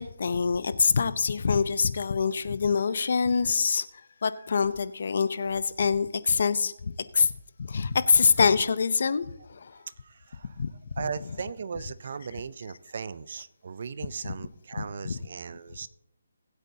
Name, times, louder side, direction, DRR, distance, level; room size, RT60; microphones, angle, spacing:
voice 1, 0.0-7.3 7.6-9.8 10.6-10.7 10.9-11.1 14.2-14.3 14.8-15.2, left 5 dB, 50° left, 15 dB, 0.6 m, -25 dB
voice 2, 9.8-10.6 11.0-15.9, right 6 dB, 45° right, 16 dB, 0.5 m, -37 dB
19.5 x 8.1 x 2.8 m, 0.89 s
hypercardioid pair, 170°, 0 cm